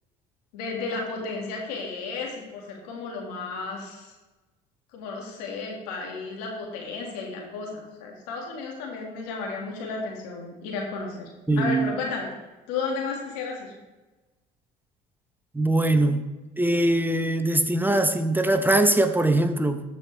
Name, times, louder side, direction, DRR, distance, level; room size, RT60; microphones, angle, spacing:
voice 1, 0.5-4.1 4.9-11.3 11.6-12.3 12.7-13.7, left 4 dB, 85° left, 0 dB, 1.9 m, -33 dB
voice 2, 11.5-11.9 15.5-16.2 16.6-19.8, right 1 dB, 10° right, 8 dB, 0.8 m, -22 dB
14.0 x 5.1 x 3.3 m, 1.1 s
supercardioid pair, 70°, 21 cm